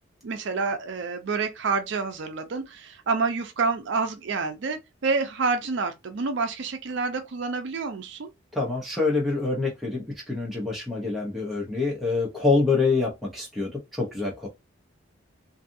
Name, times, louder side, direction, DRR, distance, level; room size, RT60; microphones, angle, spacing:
voice 1, 0.2-8.3, right 4 dB, 60° right, 0.4 m, -28 dB
voice 2, 8.5-14.5, left 3 dB, ahead, 0.7 m, -26 dB
2.6 x 2.4 x 2.6 m
head